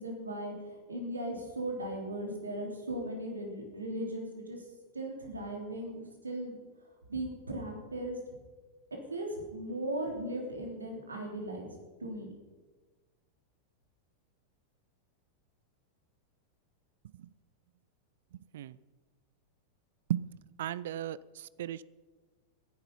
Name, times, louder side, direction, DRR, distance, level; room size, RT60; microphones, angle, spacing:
voice 1, 0.0-4.6 4.9-6.6 7.1-8.2 9.1-11.7 12.0-12.3, right 1 dB, 75° right, 2 dB, 3.4 m, -37 dB
voice 2, 18.3-18.8 20.1-20.3 20.6-21.8, right 12 dB, 60° right, 21 dB, 0.4 m, -36 dB
17.0 x 11.0 x 5.5 m, 1.3 s
figure-of-eight pair, 90°, 0 cm